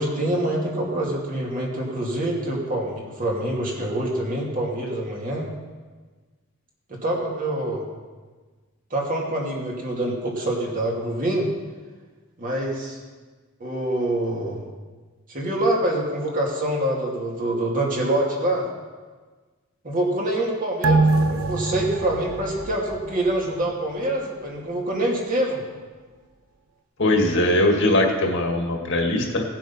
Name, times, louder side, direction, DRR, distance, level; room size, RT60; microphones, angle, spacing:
voice 1, 0.0-5.5 6.9-7.8 8.9-11.5 12.4-13.0 13.6-14.6 15.3-18.7 19.8-25.6, right 1 dB, 40° right, -2 dB, 2.6 m, -25 dB
sound 1, 20.8-23.7 24.1-24.2, right 3 dB, 85° right, 0.7 m, -23 dB
voice 2, 27.0-29.4, left 1 dB, 65° left, 2 dB, 1.9 m, -20 dB
17.5 x 7.4 x 5.5 m, 1.4 s
head